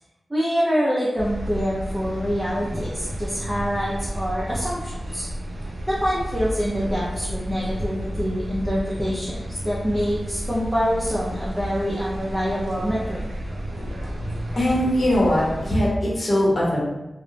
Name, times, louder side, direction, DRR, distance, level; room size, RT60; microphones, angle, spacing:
voice 1, 0.3-5.3 5.8-13.2, equal, 15° right, -7 dB, 0.5 m, -25 dB
sound 1, 1.2-15.9, equal, 85° right, 0.4 m, -32 dB
voice 2, 14.6-16.8, left 1 dB, 55° left, -5 dB, 0.7 m, -21 dB
2.3 x 2.0 x 3.1 m, 0.98 s
wide cardioid pair, 75°, 0 cm